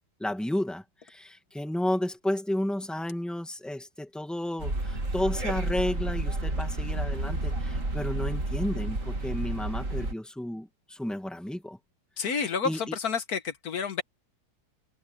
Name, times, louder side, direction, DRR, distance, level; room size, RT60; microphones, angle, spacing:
voice 1, 0.2-11.8 12.2-13.0, left 1 dB, ahead, 2.1 m, -32 dB
sound 1, 4.6-10.1, right 2 dB, 55° right, 3.5 m, -30 dB
voice 2, 12.2-14.0, left 6 dB, 75° left, 1.7 m, -30 dB
omnidirectional pair, 1.6 m